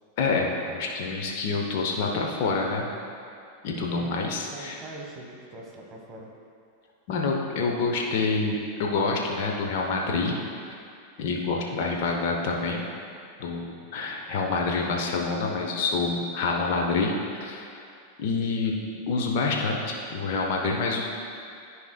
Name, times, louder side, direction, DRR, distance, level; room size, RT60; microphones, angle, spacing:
voice 1, 0.2-2.9 3.6-4.8 7.1-10.3 11.2-12.8 13.4-17.1 17.4-17.8 18.2-18.8 19.1-21.2, left 4 dB, 50° left, 0 dB, 0.9 m, -27 dB
voice 2, 3.9-6.3, right 2 dB, 20° right, -1 dB, 1.3 m, -43 dB
13.5 x 4.8 x 2.2 m, 2.5 s
figure-of-eight pair, 90°, 0 cm